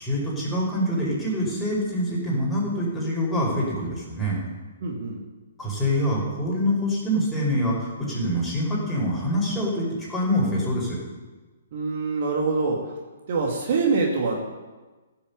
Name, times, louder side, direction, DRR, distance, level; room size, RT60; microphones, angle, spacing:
voice 1, 0.0-4.4 5.6-11.0, equal, 5° left, -6 dB, 5.3 m, -25 dB
voice 2, 4.8-5.2 11.7-13.0 13.3-14.4, right 4 dB, 50° right, 0 dB, 2.4 m, -25 dB
15.0 x 7.4 x 6.8 m, 1.3 s
figure-of-eight pair, 125°, 0 cm